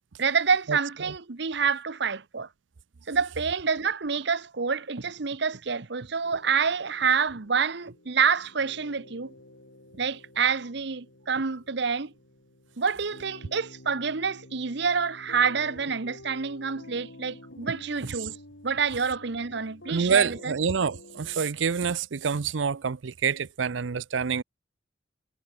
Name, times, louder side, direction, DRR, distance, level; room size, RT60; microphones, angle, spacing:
voice 1, 0.2-2.5 3.1-9.3 9.9-12.1 12.8-18.4 18.6-20.5, right 6 dB, 65° right, 1.0 m, -27 dB
sound 1, 6.2-21.5, left 1 dB, 90° left, 7.4 m, -50 dB
voice 2, 19.9-24.4, right 6 dB, 85° right, 0.6 m, -27 dB
head